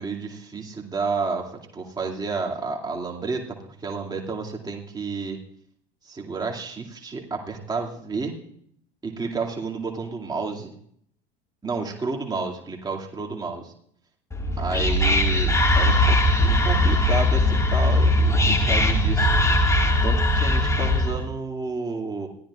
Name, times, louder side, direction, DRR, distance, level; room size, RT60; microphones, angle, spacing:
voice 1, 0.0-5.4 6.0-8.3 9.0-10.7 11.6-13.7 14.6-19.3 20.0-22.3, right 4 dB, 15° right, 0 dB, 2.4 m, -31 dB
Whispering, 14.3-21.2, left 1 dB, 10° left, 2.0 m, -20 dB
22.0 x 16.0 x 2.5 m, 0.66 s
figure-of-eight pair, 80°, 30 cm